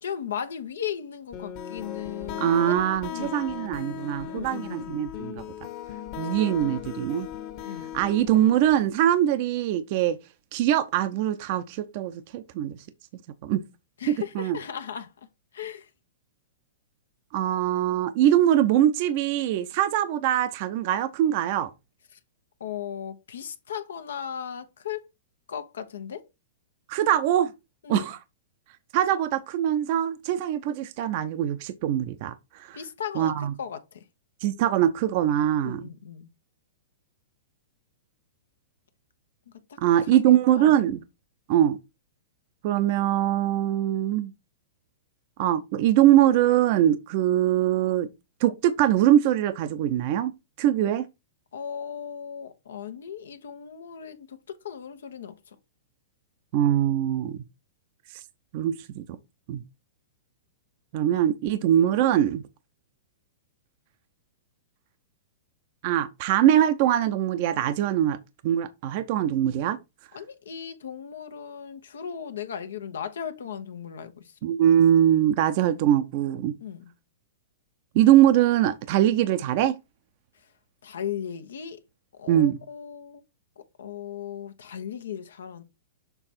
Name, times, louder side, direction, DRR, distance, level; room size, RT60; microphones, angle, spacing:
voice 1, 0.0-2.8 3.0-3.4 4.3-4.9 7.6-7.9 14.0-15.1 15.5-15.9 22.1-22.2 22.6-25.0 25.5-26.2 27.8-28.1 32.7-34.0 35.6-36.3 39.7-39.8 40.1-40.8 51.5-55.6 70.1-74.3 76.6-76.9 80.8-81.8 82.1-83.2 83.6-85.6, left 8 dB, 80° left, 1.0 m, -37 dB
sound 1, 1.3-8.9, left 9 dB, 45° left, 1.3 m, -37 dB
voice 2, 2.4-5.4 6.2-7.3 7.9-10.2 10.5-12.8 13.4-13.6 14.1-14.6 17.3-21.7 26.9-27.5 27.9-28.2 28.9-32.8 33.2-33.5 34.4-35.8 39.8-41.0 41.5-41.8 42.6-44.3 45.4-48.1 48.4-50.3 50.6-51.0 56.5-57.4 58.5-59.0 59.5-59.6 60.9-62.4 65.8-68.2 68.4-69.8 74.4-76.5 77.9-79.8 82.3-82.6, right 11 dB, 50° right, 0.6 m, -22 dB
6.9 x 3.5 x 4.3 m
hypercardioid pair, 125°, 0 cm